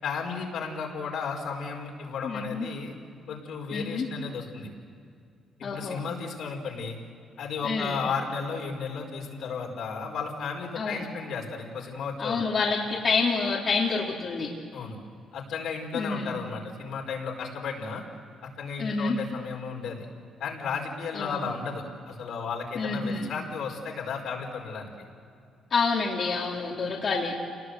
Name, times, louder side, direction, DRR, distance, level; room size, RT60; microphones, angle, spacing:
voice 1, 0.0-2.9 3.3-4.7 5.6-7.0 7.4-12.4 14.7-15.0 15.3-18.0 18.4-20.1 20.4-24.9, left 5 dB, 75° left, 1 dB, 4.8 m, -34 dB
voice 2, 2.2-2.6 3.7-4.1 5.6-6.0 7.6-8.0 10.8-11.0 12.2-14.5 15.9-16.4 18.8-19.2 21.1-21.4 22.8-23.3 25.7-27.3, left 4 dB, 50° left, -3 dB, 3.0 m, -28 dB
28.5 x 20.0 x 8.1 m, 2.3 s
cardioid pair, 90°, 0 cm